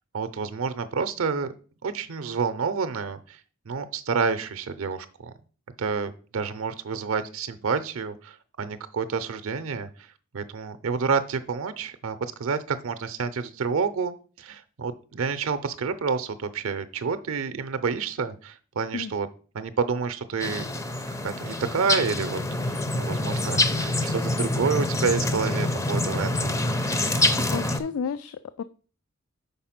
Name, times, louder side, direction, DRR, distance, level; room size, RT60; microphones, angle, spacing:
voice 1, 0.1-1.5 1.8-3.4 3.7-5.3 5.8-10.1 10.3-19.3 19.5-20.7 21.2-26.6, right 5 dB, 70° right, 11 dB, 0.5 m, -29 dB
sound 1, 20.4-27.8, left 2 dB, 15° left, 0.5 m, -26 dB
voice 2, 27.5-28.6, left 6 dB, 80° left, 13 dB, 0.3 m, -31 dB
5.4 x 4.2 x 5.8 m, 0.40 s
head